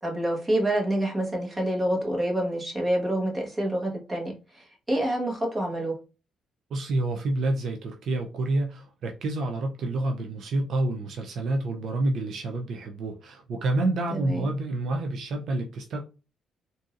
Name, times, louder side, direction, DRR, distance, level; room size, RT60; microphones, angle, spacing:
voice 1, 0.0-5.9 14.1-14.5, right 1 dB, 20° right, 1.4 m, -27 dB
voice 2, 6.7-16.0, right 2 dB, 65° right, 0.5 m, -28 dB
3.8 x 2.7 x 2.5 m
cardioid pair, 90°, 0 cm